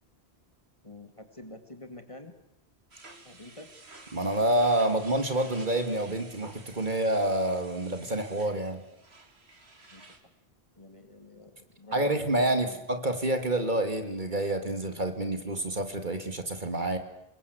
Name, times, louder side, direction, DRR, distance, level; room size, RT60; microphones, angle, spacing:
voice 1, 0.8-2.3 3.2-3.7 9.9-10.1 10.8-12.1 12.6-12.9, left 1 dB, 30° left, 7 dB, 2.5 m, -47 dB
sound 1, 2.9-10.2, right 3 dB, 75° right, 2.8 m, -52 dB
voice 2, 4.1-8.8 11.9-17.0, right 1 dB, 45° right, 7 dB, 2.4 m, -28 dB
26.5 x 22.0 x 8.2 m, 0.82 s
omnidirectional pair, 1.1 m